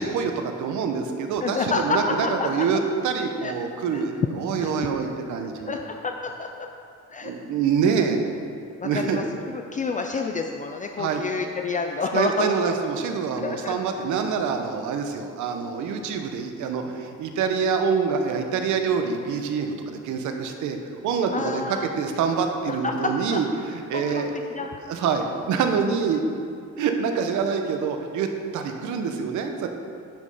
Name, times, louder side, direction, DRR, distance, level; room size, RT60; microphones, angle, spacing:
voice 1, 0.0-5.8 7.2-8.2 8.8-9.2 11.0-11.2 12.1-20.8 21.0-24.3 24.6-26.2 26.8-28.3 28.5-29.7, right 6 dB, 85° right, 5 dB, 1.0 m, -26 dB
voice 2, 1.4-2.6 3.4-3.5 3.9-4.0 4.6-4.7 5.7-6.7 7.1-7.3 8.8-12.5 13.4-13.8 21.3-21.9 22.7-23.4 23.9-24.8, left 4 dB, 25° left, 3 dB, 0.4 m, -29 dB
10.5 x 5.3 x 5.6 m, 2.4 s
cardioid pair, 145°, 29 cm